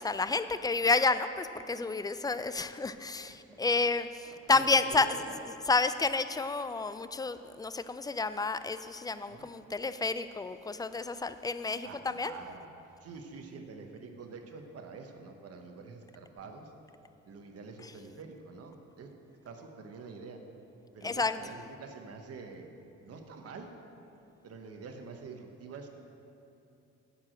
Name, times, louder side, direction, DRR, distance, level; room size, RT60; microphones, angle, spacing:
voice 1, 0.0-5.1 5.7-12.4 21.0-21.4, left 3 dB, 15° left, 12 dB, 0.3 m, -30 dB
voice 2, 3.3-3.6 4.2-5.4 9.3-9.5 11.8-12.7 13.0-16.7 17.3-19.1 19.4-20.4 20.9-22.7 23.0-23.7 24.4-25.9, right 4 dB, 55° right, 4 dB, 1.1 m, -46 dB
10.5 x 4.8 x 7.7 m, 2.7 s
cardioid pair, 90°, 30 cm